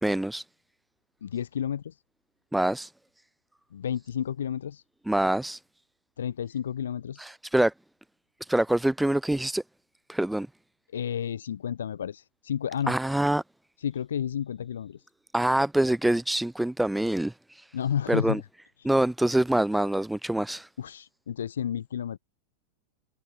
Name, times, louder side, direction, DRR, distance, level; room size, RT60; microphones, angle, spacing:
voice 1, 0.0-0.4 2.5-2.9 5.1-5.6 7.2-7.7 8.4-9.6 10.1-10.5 12.9-13.4 15.3-17.7 18.1-18.4 18.8-20.7, right 1 dB, 5° right, 1.9 m, -25 dB
voice 2, 1.2-2.0 3.7-4.8 6.2-7.2 10.9-12.9 13.8-15.0 17.7-18.4 18.8-18.9 20.8-22.2, left 9 dB, 65° left, 4.6 m, -31 dB
figure-of-eight pair, 90°, 0 cm